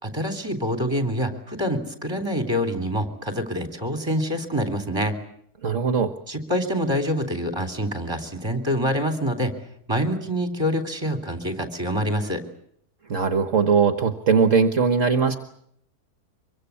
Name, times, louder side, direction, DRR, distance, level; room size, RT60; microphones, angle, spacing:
voice 1, 0.0-5.1 6.3-9.5 9.9-12.4, equal, 15° right, 8 dB, 3.5 m, -26 dB
voice 2, 5.6-6.1 13.1-15.3, right 5 dB, 55° right, 9 dB, 1.6 m, -20 dB
25.0 x 23.5 x 8.4 m, 0.71 s
omnidirectional pair, 1.6 m